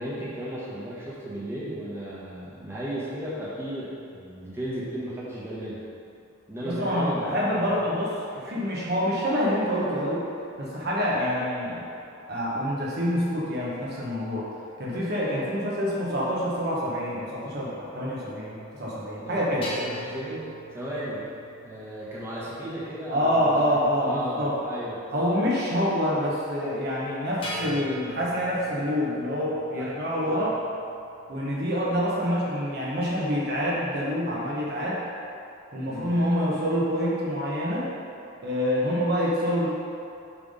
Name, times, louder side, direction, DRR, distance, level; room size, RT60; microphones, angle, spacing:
voice 1, 0.0-5.8 6.5-7.7 19.2-20.4 20.7-21.2 21.6-25.3 29.7-29.9 30.2-30.4 35.9-36.1, equal, 10° right, -9 dB, 1.3 m, -35 dB
voice 2, 6.6-10.2 10.6-11.8 12.3-14.5 14.8-19.7 23.1-24.6 25.1-30.5 31.3-35.0 35.7-37.9 38.4-39.7, equal, 50° right, -6 dB, 1.1 m, -26 dB
sound 1, 19.6-23.9 27.4-31.3, equal, 25° left, 1.4 m, -41 dB
7.2 x 3.5 x 5.4 m, 2.6 s
head